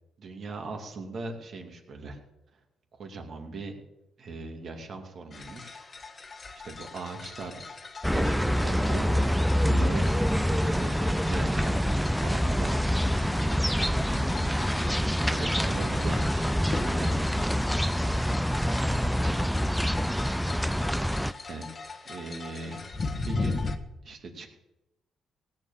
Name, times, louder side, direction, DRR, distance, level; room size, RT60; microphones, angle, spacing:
voice 1, 0.2-2.2 3.0-3.8 4.2-5.8 6.6-7.6 8.1-13.5 15.3-17.2 21.5-21.7 22.1-22.8 23.2-23.8 24.0-24.5, right 3 dB, 55° right, 3 dB, 2.6 m, -39 dB
sound 1, 5.3-23.8, left 3 dB, 35° left, 1.2 m, -39 dB
sound 2, 8.0-21.3, equal, ahead, 0.4 m, -26 dB
17.0 x 7.5 x 7.3 m, 0.94 s
cardioid pair, 90°, 0 cm